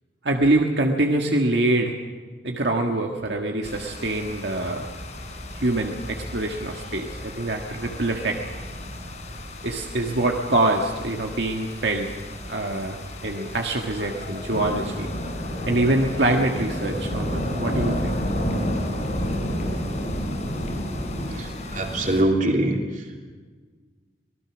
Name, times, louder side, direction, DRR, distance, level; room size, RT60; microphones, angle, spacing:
voice 1, 0.2-1.9 2.4-4.9 5.6-8.4 9.6-12.1 12.5-15.1 15.7-18.1, right 2 dB, 80° right, 2 dB, 1.7 m, -24 dB
sound 1, 3.6-22.2, left 1 dB, 40° left, 4.4 m, -31 dB
voice 2, 21.3-23.2, right 1 dB, 45° right, 1 dB, 3.2 m, -24 dB
25.5 x 19.5 x 6.2 m, 1.5 s
head